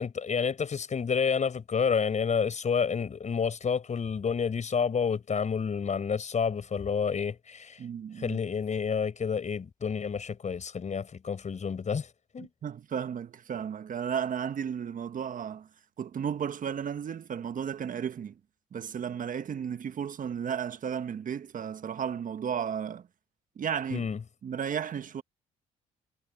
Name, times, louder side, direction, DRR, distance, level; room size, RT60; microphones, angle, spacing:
voice 1, 0.0-7.8 8.2-12.1 12.3-12.5 23.9-24.2, left 6 dB, 45° left, 5.2 m, -29 dB
voice 2, 7.8-8.4 12.4-15.7 16.0-18.4 18.7-23.1 23.6-24.1 24.4-25.2, right 8 dB, 50° right, 1.4 m, -34 dB
hypercardioid pair, 60°, 17 cm